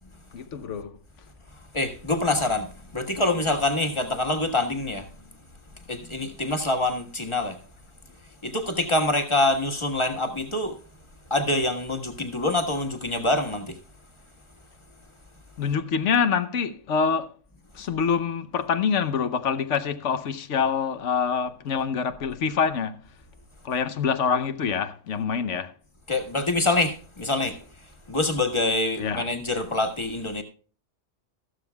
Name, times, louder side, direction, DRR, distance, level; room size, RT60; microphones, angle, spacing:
voice 1, 0.3-1.0 15.6-17.3 17.7-23.0 23.6-25.7 29.0-29.3, left 6 dB, 80° left, 1.2 m, -26 dB
voice 2, 1.7-5.1 5.8-7.6 8.4-10.8 11.3-13.8 26.1-27.6 28.1-30.4, left 2 dB, 25° left, 1.5 m, -25 dB
14.0 x 12.5 x 2.3 m
omnidirectional pair, 1.2 m